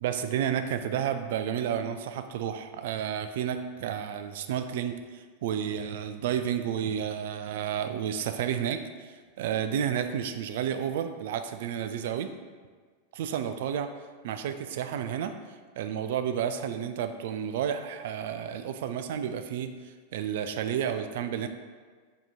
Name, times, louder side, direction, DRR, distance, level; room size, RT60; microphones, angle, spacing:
voice 1, 0.0-12.3 13.1-13.9 14.2-15.3 15.8-21.5, right 9 dB, 55° right, 9 dB, 0.3 m, -31 dB
4.6 x 3.0 x 3.6 m, 1.5 s
figure-of-eight pair, 90°, 0 cm